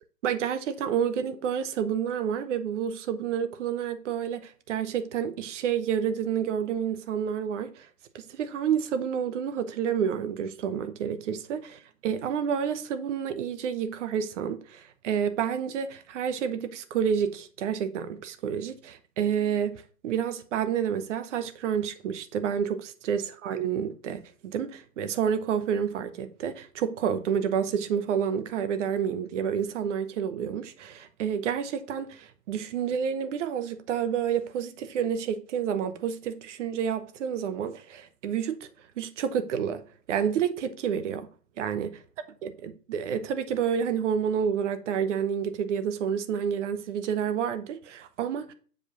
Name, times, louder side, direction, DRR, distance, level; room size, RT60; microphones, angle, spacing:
voice 1, 0.2-7.9 8.1-38.7 39.0-39.8 40.1-41.3 41.6-41.9 42.4-48.5, right 8 dB, 45° right, 0.9 m, -29 dB
7.4 x 4.9 x 3.9 m
figure-of-eight pair, 115°, 49 cm